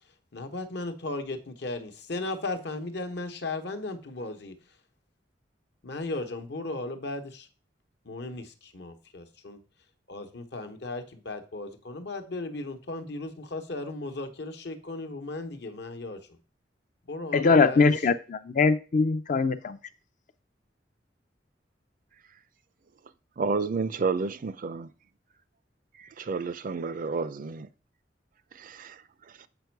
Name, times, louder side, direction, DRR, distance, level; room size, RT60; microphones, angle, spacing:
voice 1, 0.3-4.6 5.8-7.5 8.0-9.6 10.1-16.2 17.0-17.9, left 2 dB, 70° left, 1.0 m, -36 dB
voice 2, 17.3-19.8, left 4 dB, 45° left, 0.5 m, -22 dB
voice 3, 23.4-24.9 26.2-27.7 28.6-28.9, right 4 dB, 50° right, 0.4 m, -30 dB
7.9 x 5.2 x 4.6 m
head